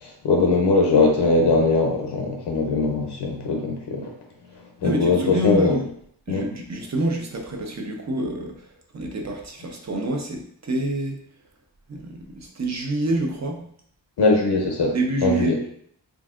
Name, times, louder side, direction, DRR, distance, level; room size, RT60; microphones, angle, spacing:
voice 1, 0.0-4.1 4.8-5.8 6.3-6.5 14.2-14.9 15.2-15.6, left 3 dB, 65° left, 2 dB, 0.6 m, -20 dB
voice 2, 4.8-5.9 6.3-11.2 11.9-13.6 14.9-15.6, right 1 dB, 40° right, 2 dB, 0.7 m, -27 dB
3.9 x 3.5 x 2.4 m, 0.66 s
wide cardioid pair, 150°, 45 cm